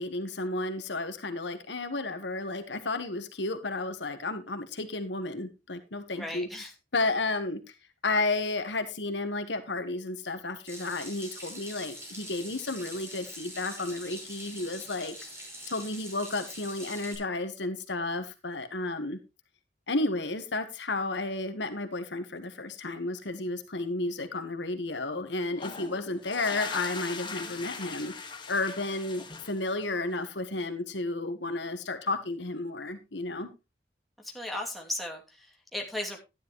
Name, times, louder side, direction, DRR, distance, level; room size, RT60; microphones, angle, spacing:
voice 1, 0.0-6.5 6.9-7.7 8.0-15.1 15.7-19.2 19.9-28.1 28.5-33.5, left 2 dB, 75° left, 8 dB, 1.5 m, -32 dB
voice 2, 6.1-6.7 34.2-36.2, left 1 dB, ahead, 0 dB, 2.6 m, -36 dB
Water tap faucet / Sink (filling or washing), 10.7-17.1, equal, 15° right, 5.3 m, -44 dB
sound 1, 25.5-30.1, left 4 dB, 25° left, 1.7 m, -40 dB
12.5 x 10.5 x 3.1 m, 0.25 s
head